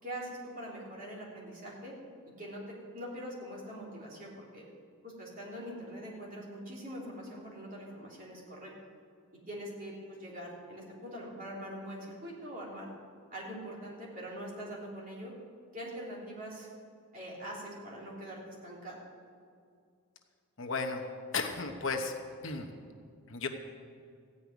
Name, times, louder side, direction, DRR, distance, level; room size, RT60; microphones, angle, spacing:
voice 1, 0.0-1.9 2.4-2.6 2.9-4.6 5.0-8.7 9.5-12.9 13.3-15.3 15.7-16.7 17.1-18.9, equal, 40° right, -5 dB, 3.3 m, -43 dB
voice 2, 20.6-21.1 21.3-22.1 22.4-22.7 23.3-23.5, left 4 dB, 60° left, 4 dB, 1.0 m, -34 dB
14.5 x 5.6 x 9.5 m, 2.3 s
head